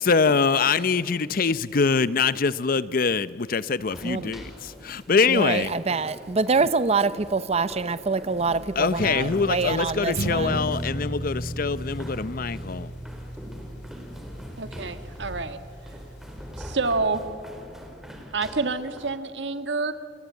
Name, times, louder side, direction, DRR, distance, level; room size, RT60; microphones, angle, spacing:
voice 1, 0.0-5.7 8.7-12.9, left 5 dB, 55° left, 16 dB, 0.6 m, -24 dB
sound 1, 3.8-19.1, equal, ahead, 4.0 m, -44 dB
voice 2, 5.3-10.6, right 4 dB, 35° right, 14 dB, 0.7 m, -25 dB
sound 2, 8.4-16.5, equal, 80° left, 2.8 m, -35 dB
voice 3, 14.6-15.6 15.8-16.0 16.6-17.2 18.3-19.9, right 3 dB, 80° right, 9 dB, 1.7 m, -28 dB
29.5 x 22.0 x 8.3 m, 2.5 s
head